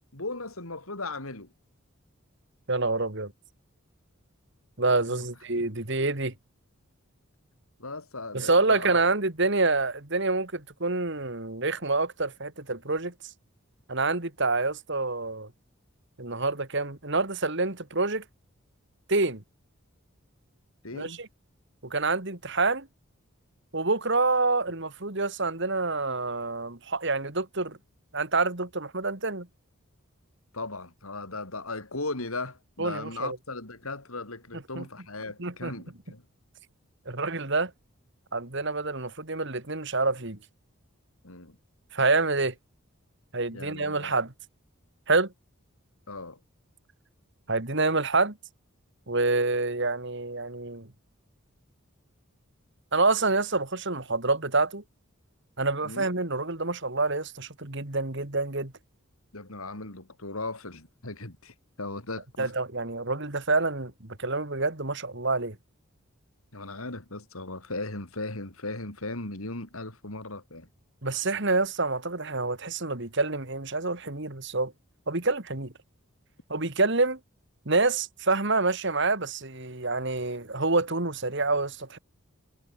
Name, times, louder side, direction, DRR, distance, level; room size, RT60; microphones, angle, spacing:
voice 1, 0.0-1.5 5.1-5.3 7.8-9.0 20.8-21.2 30.5-36.2 41.2-41.6 43.5-44.1 46.1-46.4 55.8-56.1 59.3-62.5 66.5-70.7, left 2 dB, 85° left, 4.5 m, -37 dB
voice 2, 2.7-3.3 4.8-6.3 8.3-13.1 13.9-15.5 16.2-18.2 19.1-19.4 20.9-21.3 21.8-22.9 23.7-27.8 28.1-29.5 32.8-33.4 34.7-34.9 35.4-35.7 37.1-37.7 38.3-40.4 41.9-42.5 43.3-44.3 45.1-45.3 47.5-48.4 49.1-50.9 52.9-54.8 55.6-58.7 62.4-65.6 71.0-74.7 75.1-75.7 76.5-77.2 77.7-82.0, right 3 dB, 55° right, 2.5 m, -27 dB
head